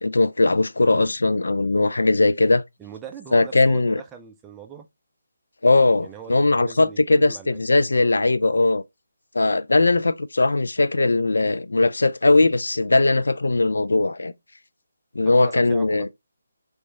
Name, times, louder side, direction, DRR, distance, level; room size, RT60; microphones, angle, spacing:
voice 1, 0.0-2.6 3.3-4.0 5.6-8.8 9.3-14.3 15.2-16.1, left 2 dB, 80° left, 0.3 m, -19 dB
voice 2, 2.8-4.9 6.0-8.1 9.8-10.0 15.2-16.1, right 7 dB, 15° right, 0.4 m, -41 dB
3.4 x 3.0 x 2.8 m
figure-of-eight pair, 155°, 0 cm